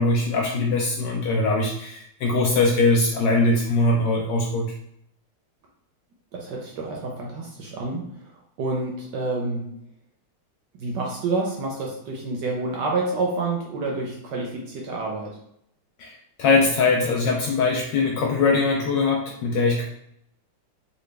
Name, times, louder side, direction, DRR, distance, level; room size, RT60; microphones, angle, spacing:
voice 1, 0.0-4.7 16.0-19.8, left 3 dB, 75° left, 0 dB, 1.1 m, -21 dB
voice 2, 6.3-9.8 10.8-15.4, right 3 dB, 70° right, -1 dB, 1.1 m, -28 dB
4.0 x 2.2 x 3.3 m, 0.73 s
omnidirectional pair, 2.3 m